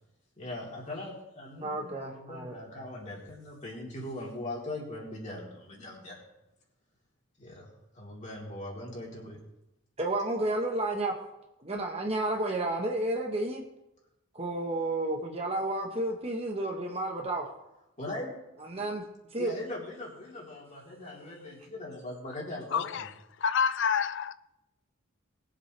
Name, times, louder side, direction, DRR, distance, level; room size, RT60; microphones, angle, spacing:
voice 1, 0.4-6.2 7.4-7.7 7.9-9.4 18.0-18.3 18.7-18.8 19.4-23.1, left 1 dB, 35° left, 3.7 m, -40 dB
voice 2, 1.6-2.5 10.0-11.1 11.6-13.6 14.3-17.5 18.6-19.0 19.3-19.5, right 2 dB, 30° right, 1.2 m, -31 dB
voice 3, 22.7-23.1 23.4-24.3, left 6 dB, 60° left, 0.4 m, -27 dB
21.0 x 7.8 x 3.4 m
head